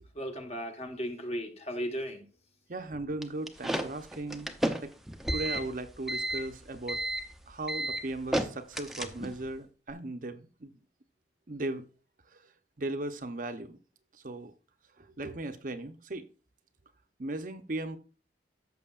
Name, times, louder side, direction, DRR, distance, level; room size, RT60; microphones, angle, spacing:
voice 1, 0.2-2.2, equal, 35° left, 1.3 m, -36 dB
voice 2, 2.7-4.5 4.8-4.9 5.3-7.0 7.5-10.7 11.5-11.8 12.8-13.8 14.2-14.5 15.0-16.2 17.2-18.0, right 2 dB, 45° right, 0.8 m, -37 dB
sound 1, 3.2-9.5, right 1 dB, ahead, 0.6 m, -32 dB
14.0 x 6.3 x 2.4 m
head